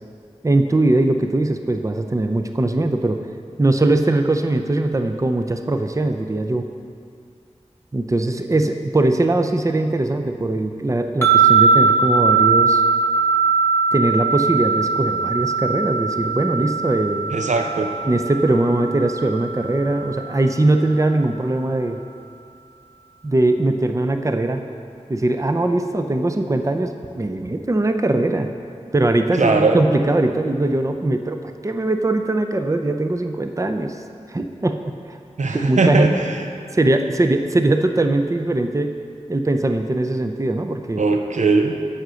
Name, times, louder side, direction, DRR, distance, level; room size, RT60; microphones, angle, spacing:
voice 1, 0.4-3.2 3.6-6.7 7.9-12.8 13.9-17.3 18.1-22.0 23.2-24.6 25.1-28.5 28.9-34.0 34.3-35.2 35.5-36.1 36.7-38.9 39.3-41.0, right 2 dB, 25° right, 6 dB, 0.6 m, -20 dB
sound 1, 11.2-20.5, right 5 dB, 20° left, 1.0 m, -20 dB
voice 2, 17.3-17.9 29.4-29.8 35.4-36.4 41.0-41.8, right 3 dB, 80° right, 4 dB, 0.7 m, -19 dB
7.9 x 5.8 x 6.3 m, 2.3 s
cardioid pair, 40°, 12 cm